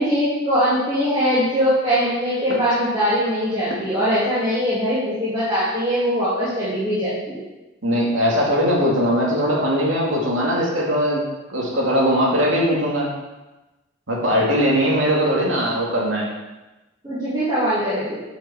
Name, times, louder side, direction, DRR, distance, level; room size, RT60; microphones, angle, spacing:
voice 1, 0.0-7.4 17.0-18.2, equal, 20° right, -11 dB, 2.6 m, -21 dB
voice 2, 7.8-11.2 11.5-13.1 14.1-16.2, equal, 85° right, -4 dB, 2.4 m, -20 dB
9.1 x 5.8 x 4.3 m, 1.1 s
head